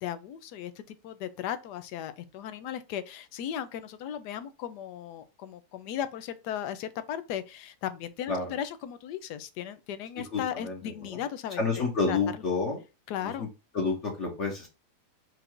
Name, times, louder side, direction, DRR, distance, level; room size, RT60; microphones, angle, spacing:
voice 1, 0.0-11.6 12.1-12.2 13.1-13.5, left 10 dB, 85° left, 1.2 m, -36 dB
voice 2, 10.3-11.2 11.6-12.8 13.2-13.5 13.7-14.7, left 4 dB, 50° left, 1.3 m, -29 dB
4.7 x 2.5 x 4.4 m
omnidirectional pair, 1.7 m